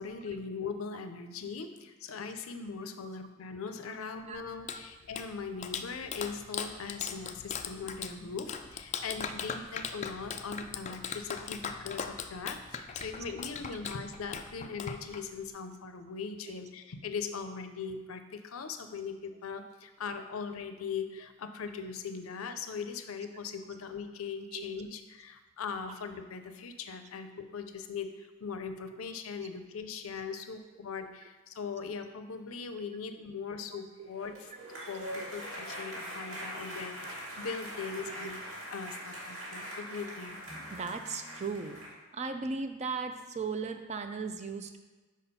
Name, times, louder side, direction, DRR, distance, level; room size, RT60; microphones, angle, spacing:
voice 1, 0.0-34.5 34.9-38.4 38.7-40.4, left 5 dB, 85° left, 8 dB, 0.5 m, -40 dB
Clapping, 4.3-15.5, left 6 dB, 35° left, 0.3 m, -40 dB
voice 2, 33.7-34.1 34.8-34.9 38.0-38.3 40.7-41.8 42.1-44.8, right 4 dB, 35° right, 7 dB, 0.4 m, -37 dB
sound 1, 34.1-41.9, equal, 70° right, 2.1 m, -42 dB
4.9 x 4.2 x 5.4 m, 1.2 s
head